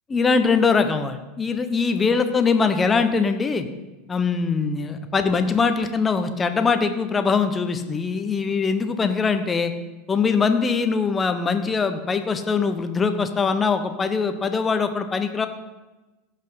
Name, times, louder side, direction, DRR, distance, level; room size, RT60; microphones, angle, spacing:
voice 1, 0.1-3.7 4.1-9.7 10.1-15.5, left 5 dB, 20° left, 8 dB, 1.2 m, -22 dB
16.5 x 5.6 x 5.8 m, 1.1 s
figure-of-eight pair, 80°, 0 cm